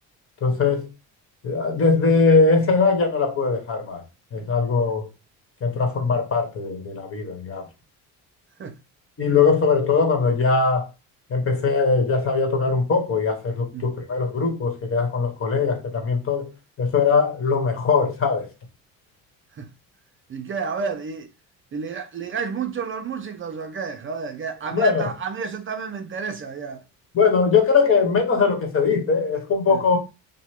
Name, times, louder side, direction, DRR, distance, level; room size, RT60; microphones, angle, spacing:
voice 1, 0.4-0.9 1.4-4.0 4.3-5.1 5.6-7.7 9.2-10.9 11.3-16.5 16.8-18.5 24.7-25.1 27.1-30.0, left 4 dB, 40° left, 1.4 m, -21 dB
voice 2, 20.3-21.3 21.7-26.8 29.7-29.8, right 5 dB, 35° right, 0.6 m, -30 dB
6.1 x 2.2 x 3.6 m
cardioid pair, 105°, 34 cm